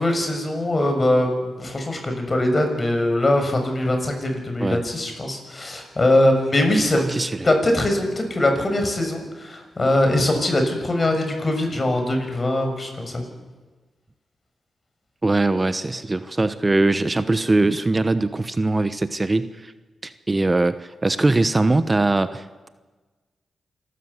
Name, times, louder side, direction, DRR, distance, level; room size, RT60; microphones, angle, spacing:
voice 1, 0.0-7.0 7.4-13.2, left 1 dB, 40° left, 4 dB, 6.5 m, -21 dB
voice 2, 7.0-7.5 15.2-19.7 20.0-22.7, right 2 dB, 30° right, 12 dB, 1.0 m, -21 dB
26.5 x 13.0 x 8.2 m, 1.3 s
supercardioid pair, 40°, 0 cm